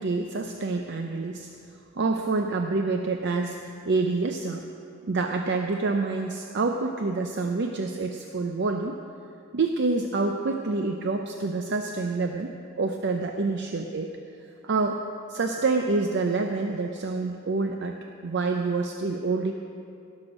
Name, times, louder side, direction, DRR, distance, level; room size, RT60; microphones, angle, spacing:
voice 1, 0.0-1.5 2.0-4.7 5.1-9.0 9.5-14.2 14.6-15.0 15.3-19.5, right 3 dB, 60° right, 4 dB, 0.6 m, -27 dB
17.5 x 6.4 x 6.3 m, 2.5 s
head